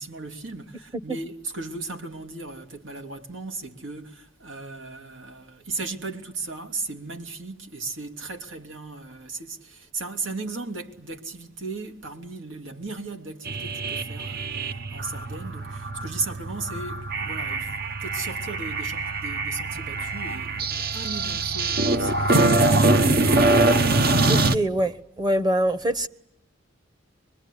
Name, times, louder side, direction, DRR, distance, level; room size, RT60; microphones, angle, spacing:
voice 1, 0.0-22.6, right 3 dB, 85° right, 2.6 m, -36 dB
sound 1, 13.5-24.6, right 2 dB, 55° right, 1.0 m, -23 dB
voice 2, 24.3-26.1, right 1 dB, 20° right, 1.0 m, -24 dB
25.0 x 23.0 x 9.9 m
head